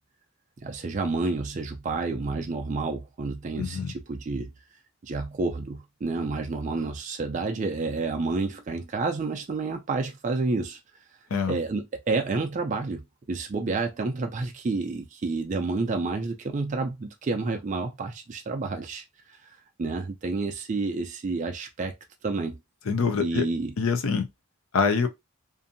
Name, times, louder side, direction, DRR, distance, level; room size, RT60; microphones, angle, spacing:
voice 1, 0.6-4.5 5.0-10.8 11.5-13.0 13.3-21.9 22.2-22.6 23.2-23.7, right 3 dB, 35° right, 0.3 m, -29 dB
voice 2, 3.6-3.9 11.3-11.6 22.9-23.5 23.8-24.3 24.7-25.1, left 5 dB, 70° left, 0.5 m, -25 dB
2.6 x 2.5 x 2.5 m
head